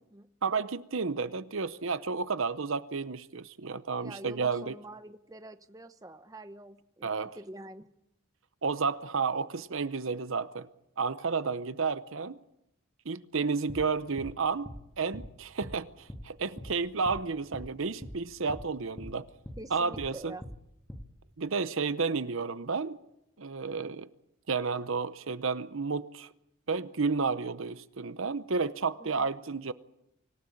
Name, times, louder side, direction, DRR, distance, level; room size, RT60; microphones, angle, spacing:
voice 1, 0.4-4.7 7.0-7.4 8.6-10.7 11.0-12.4 13.1-14.7 15.0-19.3 19.7-20.3 21.4-23.0 23.4-24.1 24.5-26.3 26.7-29.7, right 4 dB, 65° right, 0.8 m, -31 dB
voice 2, 4.0-7.9 19.6-20.4 29.0-29.3, right 1 dB, 15° right, 0.9 m, -46 dB
sound 1, 13.7-13.9 14.2-14.3 14.7-14.8 15.1-15.3 15.6-15.8 16.1-16.3 16.6-16.7 17.1-17.2 17.5-17.7 18.0-18.2 18.5-18.7 19.0-19.1 19.5-19.6 19.9-20.1 20.4-20.6 20.9-21.1, equal, 10° left, 1.7 m, -42 dB
25.0 x 16.5 x 8.6 m
head